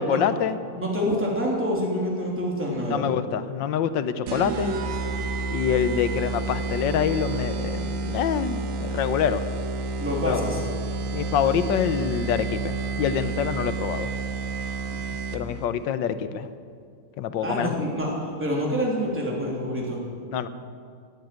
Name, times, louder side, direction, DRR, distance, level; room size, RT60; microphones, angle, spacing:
voice 1, 0.0-0.6 2.9-4.8 5.5-9.4 10.3-10.4 11.1-14.1 15.3-16.5 17.2-17.7 20.3-20.5, left 8 dB, 70° left, 12 dB, 1.2 m, -26 dB
voice 2, 0.8-3.1 10.0-10.6 14.9-15.0 17.4-20.0, equal, 5° right, -3 dB, 3.0 m, -27 dB
sound 1, 4.3-15.6, right 3 dB, 65° right, 1.6 m, -30 dB
17.0 x 8.0 x 9.3 m, 2.2 s
omnidirectional pair, 2.4 m